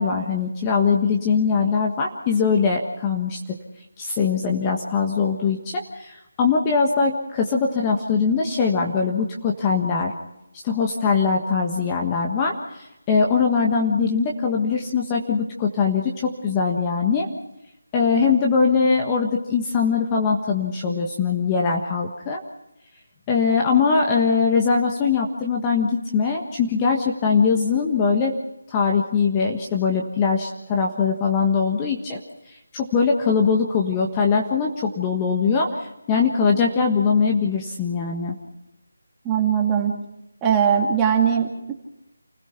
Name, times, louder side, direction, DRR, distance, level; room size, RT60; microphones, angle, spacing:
voice 1, 0.0-3.4 4.0-10.1 10.6-17.3 17.9-22.4 23.3-28.3 28.7-32.2 32.7-38.4, left 5 dB, 15° left, 1 dB, 1.5 m, -21 dB
voice 2, 39.2-39.9 40.4-41.7, right 8 dB, 10° right, 0 dB, 2.3 m, -20 dB
29.0 x 16.0 x 5.9 m, 0.91 s
figure-of-eight pair, 165°, 0 cm